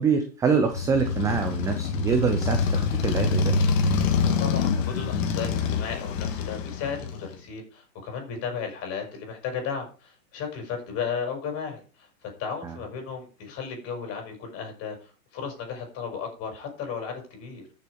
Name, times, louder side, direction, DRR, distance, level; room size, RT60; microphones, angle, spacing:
voice 1, 0.0-3.5 12.6-12.8, right 6 dB, 5° right, 5 dB, 0.5 m, -25 dB
Motorcycle, 0.7-7.4, left 5 dB, 50° left, 2.3 m, -25 dB
voice 2, 4.2-11.8 12.4-15.0 15.3-17.7, left 6 dB, 30° left, 4 dB, 5.9 m, -34 dB
13.5 x 7.1 x 5.0 m, 0.36 s
hypercardioid pair, 140°, 49 cm